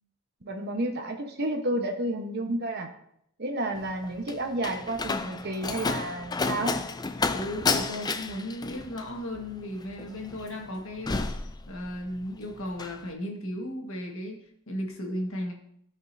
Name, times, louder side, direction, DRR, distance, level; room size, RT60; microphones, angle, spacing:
voice 1, 0.4-2.9 3.4-6.8, right 1 dB, 50° right, 3 dB, 1.2 m, -31 dB
Slam, 3.8-12.2 12.5-13.0, left 4 dB, 20° left, 0.4 m, -31 dB
voice 2, 7.3-11.3 11.7-15.5, left 1 dB, 65° left, 1 dB, 1.7 m, -35 dB
15.5 x 5.4 x 2.8 m, 0.70 s
head